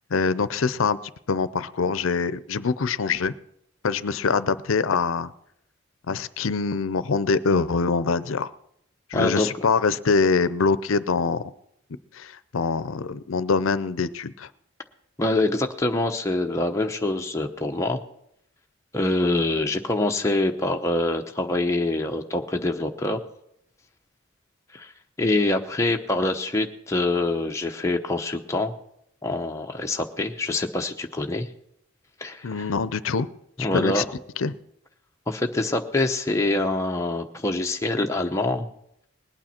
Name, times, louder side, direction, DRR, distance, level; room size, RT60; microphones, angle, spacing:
voice 1, 0.1-1.0 1.3-3.3 3.8-5.3 6.1-8.5 9.1-11.4 12.1-14.5 32.4-33.3 33.7-34.0 34.4-34.5, left 4 dB, 80° left, 16 dB, 0.6 m, -24 dB
voice 2, 9.1-9.5 15.2-18.0 18.9-23.2 24.7-24.9 25.2-28.7 29.2-31.5 32.2-32.6 33.6-34.0 35.3-38.7, left 2 dB, 15° left, 3 dB, 0.8 m, -25 dB
20.0 x 8.9 x 4.4 m, 0.76 s
head